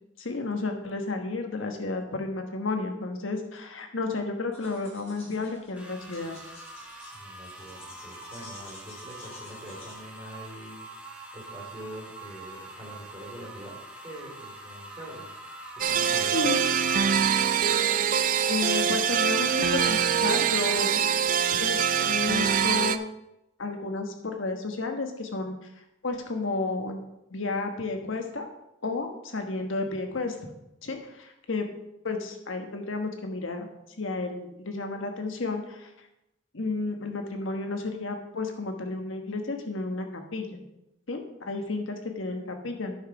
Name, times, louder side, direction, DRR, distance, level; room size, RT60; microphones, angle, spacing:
voice 1, 0.2-6.4 16.3-16.6 18.5-21.0 21.6-23.0 23.6-25.6 26.0-27.0 27.3-28.5 28.8-30.4 30.8-31.7 32.0-33.7 34.0-35.9 36.5-40.6 41.1-42.9, left 3 dB, 80° left, 4 dB, 1.3 m, -32 dB
sound 1, 4.5-9.9, left 1 dB, 30° left, 3.9 m, -49 dB
sound 2, 5.8-17.1, right 2 dB, 5° right, 1.1 m, -44 dB
voice 2, 7.1-15.4 15.7-16.5, equal, 25° right, -4 dB, 3.3 m, -44 dB
sound 3, 15.8-23.0, right 8 dB, 45° right, 0.4 m, -24 dB
9.6 x 5.8 x 4.9 m, 0.88 s
head